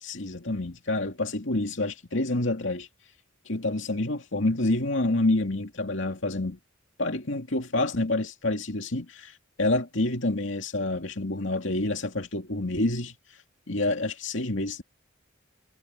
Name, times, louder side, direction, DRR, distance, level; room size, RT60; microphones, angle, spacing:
voice 1, 0.0-2.9 3.5-6.6 7.0-13.1 13.7-14.8, left 2 dB, 65° left, 2.6 m, -28 dB
head